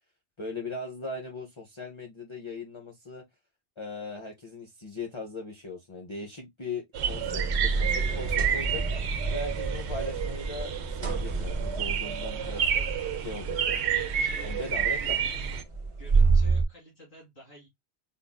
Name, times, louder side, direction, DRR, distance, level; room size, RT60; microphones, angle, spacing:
voice 1, 0.4-3.2 3.8-8.8 9.3-12.6 13.2-13.8 14.4-15.2, left 3 dB, 35° left, 0.6 m, -39 dB
sound 1, 6.9-15.6, right 8 dB, 80° right, 0.9 m, -30 dB
sound 2, 7.0-16.6, right 4 dB, 35° right, 0.6 m, -29 dB
voice 2, 12.3-13.2 14.2-14.6 15.0-15.3 16.0-17.7, equal, 65° left, 2.9 m, -49 dB
5.3 x 2.5 x 2.2 m
omnidirectional pair, 1.1 m